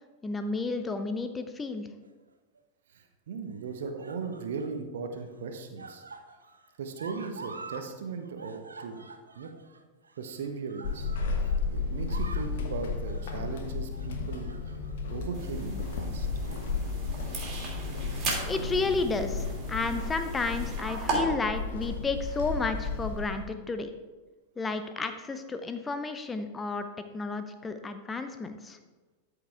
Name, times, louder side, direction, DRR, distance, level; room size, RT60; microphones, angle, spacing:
voice 1, 0.2-1.9 18.5-23.9 24.6-26.9 27.1-28.8, left 3 dB, 15° left, 9 dB, 0.7 m, -32 dB
sound 1, 2.0-2.6 3.5-4.8 5.1-7.9 8.1-11.6 11.9-12.6 13.0-13.3 13.9-14.9 15.3-15.5 16.2-16.7 17.0-17.2 18.3-19.0 19.9-20.0, right 3 dB, 75° right, 0.6 m, -48 dB
voice 2, 2.9-6.0 6.8-9.0 9.3-9.5 10.2-11.1 11.4-14.5 15.1-16.3, right 5 dB, 60° right, 6 dB, 1.0 m, -38 dB
Walk footsteps / Squeak, 10.8-23.5, left 4 dB, 55° left, 1.1 m, -33 dB
sound 2, 15.3-21.1, right 4 dB, 30° right, 2.9 m, -38 dB
13.0 x 5.0 x 3.6 m, 1.3 s
figure-of-eight pair, 90°, 0 cm